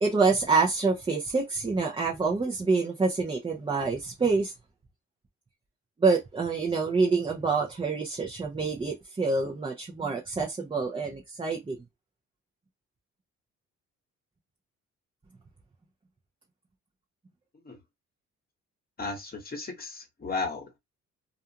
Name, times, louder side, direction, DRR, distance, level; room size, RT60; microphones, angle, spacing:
voice 1, 0.0-4.5 6.0-11.8, right 4 dB, 15° right, 0.7 m, -26 dB
voice 2, 19.0-20.8, left 3 dB, 30° left, 1.2 m, -35 dB
2.5 x 2.3 x 2.9 m
cardioid pair, 90°, 30 cm